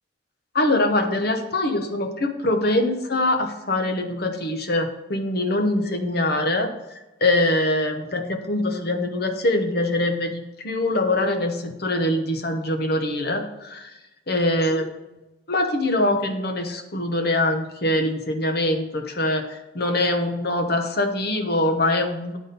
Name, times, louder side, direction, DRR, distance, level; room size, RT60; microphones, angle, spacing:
voice 1, 0.5-6.7 7.2-14.0 14.3-14.8 15.5-22.4, left 1 dB, 55° left, 5 dB, 0.9 m, -23 dB
9.9 x 4.2 x 5.2 m, 1.0 s
head